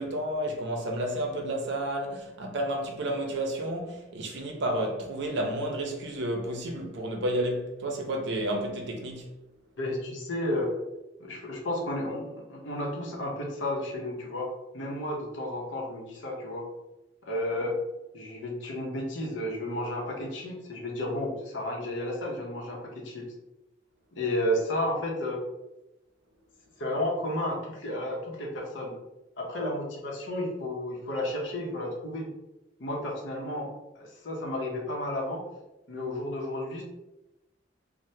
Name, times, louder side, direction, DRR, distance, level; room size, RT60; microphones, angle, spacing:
voice 1, 0.0-9.3, right 1 dB, 65° right, 0.6 m, -31 dB
voice 2, 9.8-10.7 11.2-16.7 17.2-17.7 18.1-23.2 24.2-25.4 26.8-28.9 29.4-32.3 32.8-35.4 35.9-36.8, left 1 dB, 70° left, 0.7 m, -32 dB
3.2 x 2.1 x 2.7 m
head